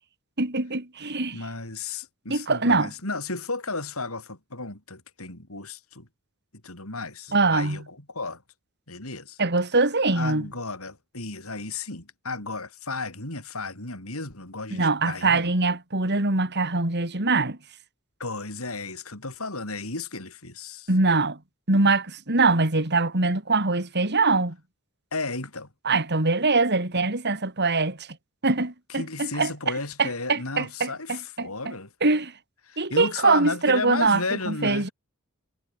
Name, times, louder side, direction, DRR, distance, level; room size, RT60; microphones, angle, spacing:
voice 1, 0.4-1.4 2.3-2.9 7.3-7.8 9.4-10.5 14.7-17.6 20.9-21.4 21.7-24.6 25.9-28.1 28.4-29.5 30.0-31.7 32.0-32.3 32.8-34.2 34.5-34.9, right 3 dB, 50° right, 3.6 m, -23 dB
voice 2, 1.3-6.1 6.6-8.4 8.9-9.4 10.1-15.5 18.2-20.9 25.1-25.7 28.9-31.9 32.7-34.9, left 3 dB, 85° left, 7.5 m, -34 dB
head